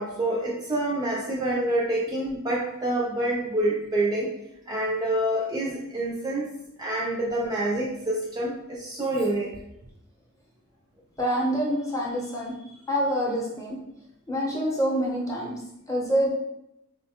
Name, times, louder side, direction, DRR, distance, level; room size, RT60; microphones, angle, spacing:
voice 1, 0.0-4.3 4.7-9.5, right 1 dB, 15° right, -4 dB, 0.3 m, -27 dB
voice 2, 11.2-12.5 12.9-13.8 14.3-15.6 15.9-16.4, equal, 15° left, -3 dB, 0.7 m, -26 dB
3.7 x 2.2 x 2.8 m, 0.82 s
head